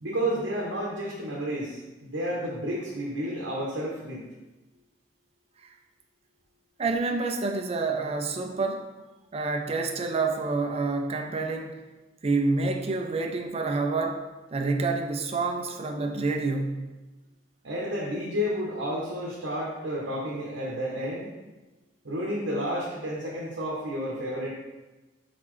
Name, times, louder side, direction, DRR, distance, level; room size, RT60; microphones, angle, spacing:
voice 1, 0.0-4.2 17.6-21.3 22.0-24.5, equal, 75° right, -4 dB, 0.9 m, -31 dB
voice 2, 6.8-8.9 9.3-11.8 12.2-14.2 14.5-16.9, right 3 dB, 35° right, 3 dB, 0.5 m, -28 dB
4.2 x 4.1 x 3.1 m, 1.1 s
head